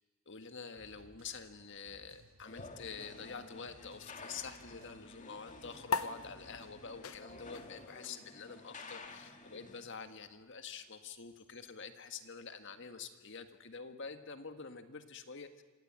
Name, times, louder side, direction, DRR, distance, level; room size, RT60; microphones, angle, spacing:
voice 1, 0.3-15.6, left 5 dB, 60° left, 8 dB, 1.7 m, -47 dB
sound 1, 0.8-8.0, right 2 dB, 65° right, 1.2 m, -63 dB
sound 2, 2.5-9.8, left 3 dB, 35° left, 2.0 m, -52 dB
sound 3, 5.9-12.7, left 4 dB, 75° left, 0.8 m, -44 dB
26.5 x 17.5 x 8.9 m, 1.3 s
head